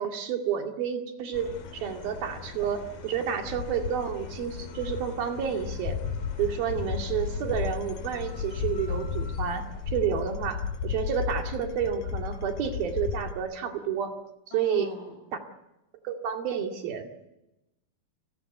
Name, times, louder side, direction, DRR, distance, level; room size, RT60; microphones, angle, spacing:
voice 1, 0.0-6.0 6.4-14.1 14.5-14.9 16.0-17.2, right 8 dB, 80° right, 5 dB, 4.1 m, -30 dB
sound 1, 1.3-13.3, left 6 dB, 75° left, 4.1 m, -34 dB
voice 2, 14.5-15.2, left 1 dB, 55° left, 4 dB, 7.3 m, -42 dB
30.0 x 17.0 x 8.0 m, 0.95 s
omnidirectional pair, 4.2 m